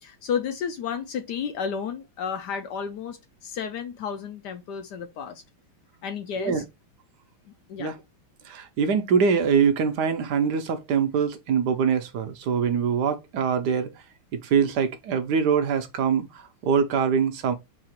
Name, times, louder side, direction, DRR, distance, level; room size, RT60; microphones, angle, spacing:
voice 1, 0.0-5.4 6.0-6.6 7.7-7.9, left 7 dB, 70° left, 1.0 m, -32 dB
voice 2, 8.5-13.9 14.3-17.5, right 6 dB, 65° right, 1.1 m, -23 dB
4.8 x 2.5 x 4.4 m
omnidirectional pair, 2.3 m